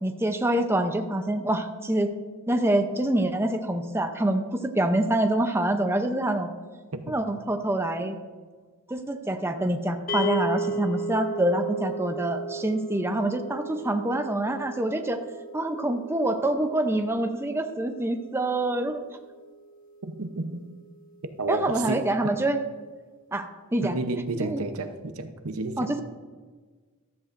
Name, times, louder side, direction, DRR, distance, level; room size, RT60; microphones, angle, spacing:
voice 1, 0.0-2.1 2.5-6.5 7.1-8.2 8.9-15.2 15.5-19.0 21.5-22.6 23.3-24.0 24.4-24.6 25.8-26.0, right 1 dB, 10° right, 0.6 m, -26 dB
sound 1, 10.1-20.4, right 1 dB, 40° left, 1.0 m, -36 dB
voice 2, 20.0-20.7 21.4-22.3 23.8-25.9, right 3 dB, 80° right, 0.8 m, -31 dB
14.5 x 13.0 x 2.6 m
head